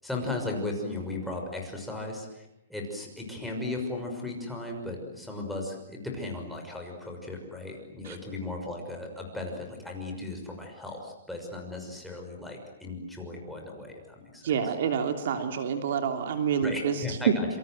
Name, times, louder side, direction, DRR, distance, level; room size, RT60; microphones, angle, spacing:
voice 1, 0.0-14.4 16.6-17.5, left 2 dB, ahead, 0 dB, 6.2 m, -36 dB
voice 2, 14.4-17.3, right 7 dB, 60° right, 6 dB, 3.2 m, -27 dB
27.5 x 27.0 x 7.9 m, 0.82 s
hypercardioid pair, 160°, 0 cm